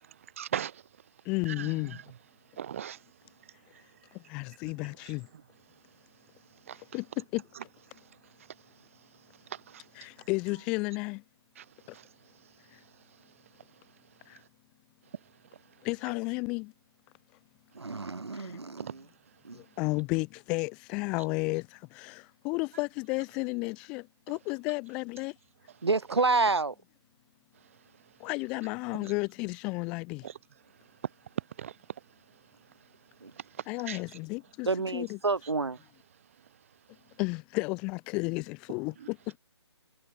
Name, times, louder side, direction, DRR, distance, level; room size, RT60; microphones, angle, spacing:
voice 1, 0.4-0.8 1.5-2.0 2.6-3.0 6.7-6.8 9.5-9.8 11.6-11.7 11.9-12.1 18.8-18.9 28.9-29.1 30.2-30.3 31.6-31.8 33.9-34.0 39.0-39.1, right 9 dB, 30° right, 1.1 m, -38 dB
voice 2, 1.2-2.0 4.1-5.3 6.9-7.4 9.9-11.2 11.9-12.0 12.7-12.8 14.3-14.4 15.8-16.7 18.3-18.6 19.5-25.4 28.2-30.3 33.7-35.2 37.2-39.4, left 27 dB, 5° left, 0.4 m, -33 dB
voice 3, 17.7-19.0 19.4-19.6 25.8-26.7 33.2-33.3 34.7-35.8, right 3 dB, 65° right, 1.0 m, -28 dB
figure-of-eight pair, 145°, 15 cm